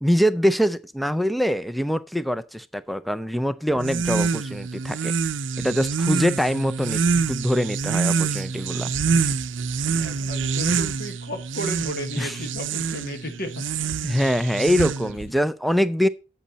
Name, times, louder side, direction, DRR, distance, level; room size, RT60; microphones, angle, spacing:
voice 1, 0.0-5.1 5.6-7.0 7.3-8.9 12.2-12.4 14.0-16.1, equal, ahead, 0.4 m, -23 dB
sound 1, 3.8-15.3, right 5 dB, 65° right, 0.6 m, -26 dB
voice 2, 10.0-13.7, equal, 50° left, 1.2 m, -34 dB
8.5 x 8.4 x 4.1 m
head